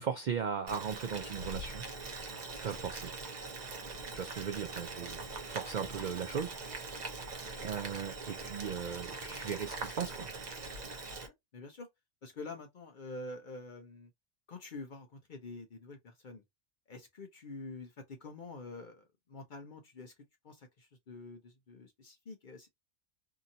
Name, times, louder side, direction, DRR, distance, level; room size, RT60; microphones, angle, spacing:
voice 1, 0.0-1.8 2.6-3.1 4.1-6.5 7.6-10.3, right 7 dB, 75° right, 0.4 m, -37 dB
Boiling, 0.7-11.3, right 3 dB, 40° right, 0.7 m, -42 dB
voice 2, 11.2-11.9 12.2-14.1 14.5-16.4 16.9-20.1 20.4-22.7, left 3 dB, 55° left, 0.6 m, -47 dB
2.8 x 2.7 x 2.6 m
omnidirectional pair, 1.3 m